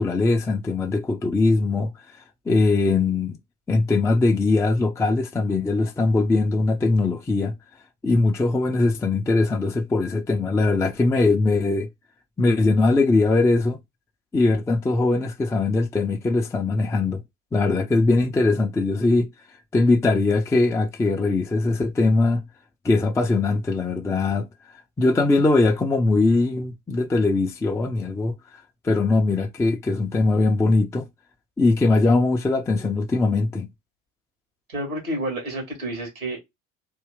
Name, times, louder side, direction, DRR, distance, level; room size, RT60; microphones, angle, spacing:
voice 1, 0.0-1.9 2.5-3.4 3.7-7.6 8.0-11.9 12.4-13.8 14.3-17.2 17.5-19.3 19.7-22.4 22.8-24.5 25.0-28.4 28.8-31.1 31.6-33.7, left 3 dB, 5° left, 0.4 m, -21 dB
voice 2, 34.7-36.4, right 1 dB, 90° right, 2.1 m, -29 dB
3.6 x 2.6 x 3.2 m
figure-of-eight pair, 70°, 41 cm